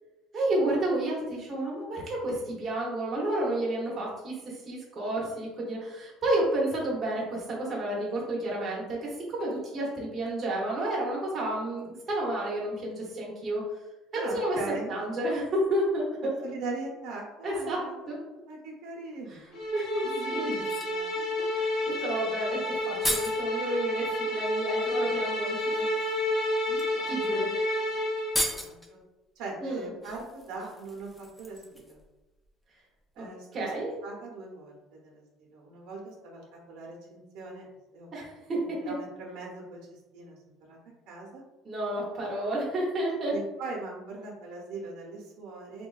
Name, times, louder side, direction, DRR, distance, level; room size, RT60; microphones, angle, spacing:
voice 1, 0.3-4.3 4.7-9.0 9.3-13.6 14.1-14.6 14.9-16.3 17.4-18.2 19.3-19.4 19.7-20.5 21.4-25.8 27.1-27.5 29.6-29.9 33.2-33.3 33.5-33.9 38.1-38.8 41.6-43.3, right 1 dB, 25° right, -4 dB, 0.8 m, -31 dB
voice 2, 14.1-14.9 16.4-18.0 18.5-19.4 20.0-21.1 26.7-27.4 27.8-27.9 28.5-28.8 29.4-32.0 33.1-33.7 34.0-37.7 37.9-38.1 38.6-40.4 40.7-40.8 41.1-41.4 43.2-45.9, right 3 dB, 80° right, -2 dB, 0.7 m, -40 dB
sound 1, 19.5-28.4, left 1 dB, 55° left, 0.6 m, -30 dB
sound 2, 19.6-19.7 20.5-21.0 22.5-22.6 22.8-23.4 24.9-25.0 25.6-25.8 26.7-26.8 27.2-27.3 27.6-27.7 28.2-28.9 30.0-32.1 32.4-32.5, left 1 dB, 10° left, 0.3 m, -34 dB
3.3 x 2.2 x 2.3 m, 1.1 s
cardioid pair, 165°, 0 cm